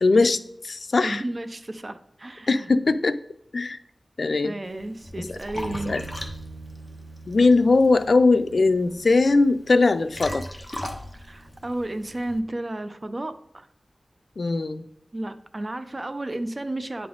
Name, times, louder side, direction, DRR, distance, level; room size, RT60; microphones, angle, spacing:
voice 1, 0.0-1.2 2.5-3.2 3.5-3.8 4.2-4.5 5.3-5.4 5.9-6.0 7.3-10.4 14.4-14.8, left 3 dB, 70° left, 11 dB, 0.4 m, -20 dB
voice 2, 1.0-2.7 4.4-5.9 11.1-13.7 15.1-17.1, right 1 dB, 40° right, 10 dB, 0.5 m, -32 dB
Liquid, 4.6-12.4, left 1 dB, 20° left, 1.0 m, -39 dB
Bass guitar, 5.6-11.8, right 3 dB, 60° right, 0.9 m, -44 dB
9.6 x 3.4 x 3.8 m, 0.71 s
wide cardioid pair, 70°, 0 cm